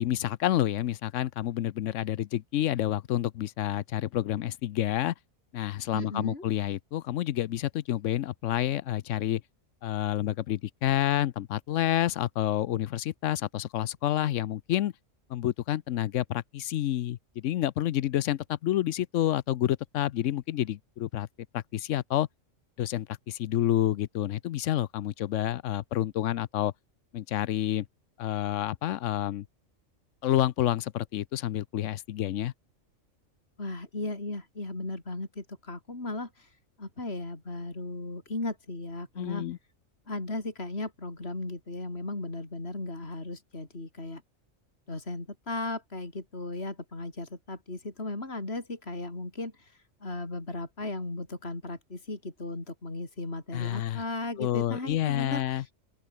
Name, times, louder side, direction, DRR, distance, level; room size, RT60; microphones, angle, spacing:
voice 1, 0.0-5.1 5.5-9.4 9.8-14.9 15.3-21.3 21.5-22.3 22.8-26.7 27.1-27.9 28.2-29.5 30.2-32.5 39.2-39.6 53.5-54.0 54.4-55.6, left 12 dB, 75° left, 1.0 m, -29 dB
voice 2, 5.9-6.4 33.6-36.5 36.8-39.4 40.1-44.2 44.9-55.7, left 2 dB, 50° left, 4.5 m, -36 dB
open air
omnidirectional pair, 1.3 m